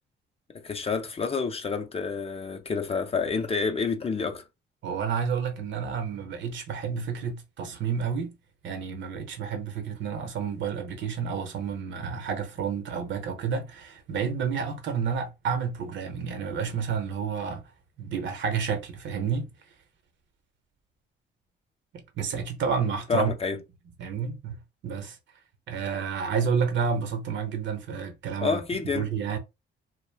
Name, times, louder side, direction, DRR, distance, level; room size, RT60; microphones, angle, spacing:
voice 1, 0.6-4.4 23.1-23.6 28.4-29.0, left 5 dB, 30° left, 0.5 m, -28 dB
voice 2, 4.8-8.4 8.6-17.6 18.0-19.5 22.2-23.3 24.0-25.2 25.7-28.6 28.9-29.4, right 6 dB, 70° right, 0.9 m, -30 dB
2.4 x 2.1 x 3.3 m
cardioid pair, 90°, 20 cm